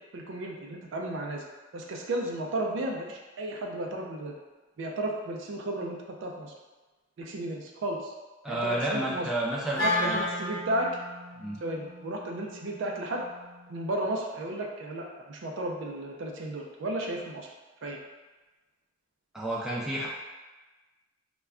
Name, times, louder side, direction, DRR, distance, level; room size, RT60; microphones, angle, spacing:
voice 1, 0.1-1.4 1.7-4.3 4.8-6.5 7.2-8.1 8.5-9.3 9.8-10.9 11.6-13.3 13.7-17.5 17.8-18.0, right 1 dB, 70° right, 0 dB, 0.4 m, -33 dB
voice 2, 8.4-10.3 11.4-11.6 19.3-20.1, right 1 dB, 5° right, -6 dB, 0.4 m, -31 dB
Wind instrument woodwind instrument, 9.7-14.0, left 2 dB, 20° left, 1.0 m, -34 dB
2.2 x 2.2 x 3.5 m, 1.2 s
head